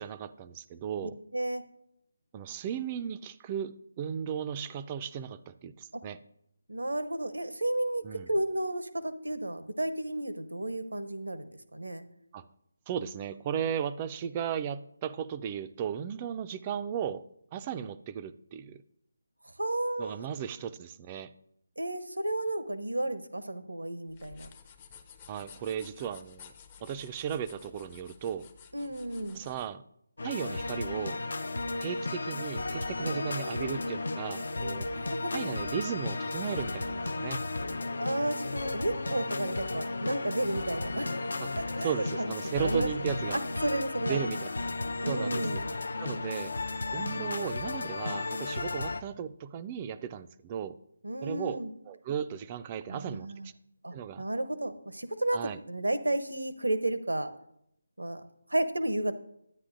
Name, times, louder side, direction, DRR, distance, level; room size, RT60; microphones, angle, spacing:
voice 1, 0.0-1.1 2.3-6.2 8.0-8.3 12.3-12.5 12.9-17.2 17.5-18.8 20.0-21.3 25.3-26.5 26.8-28.5 29.3-29.8 30.2-31.2 31.8-34.9 35.3-37.4 41.4-41.5 41.8-43.4 44.1-44.5 45.1-45.4 46.0-46.5 46.9-50.8 51.2-53.3 53.9-54.2 55.3-55.6, right 8 dB, 25° right, 12 dB, 0.3 m, -36 dB
voice 2, 1.0-1.6 6.7-12.0 19.6-20.2 21.8-24.5 28.7-29.4 33.0-33.8 35.0-35.6 38.0-41.3 41.6-44.2 45.0-45.7 51.0-51.7 52.9-53.5 53.8-57.3 58.0-58.2 58.5-59.1, right 1 dB, 85° right, 11 dB, 0.7 m, -33 dB
sound 1, 24.1-29.7, left 7 dB, 25° left, 0.6 m, -53 dB
sound 2, 30.2-49.0, left 2 dB, 65° left, 0.5 m, -34 dB
9.9 x 9.5 x 2.5 m, 0.75 s
figure-of-eight pair, 155°, 0 cm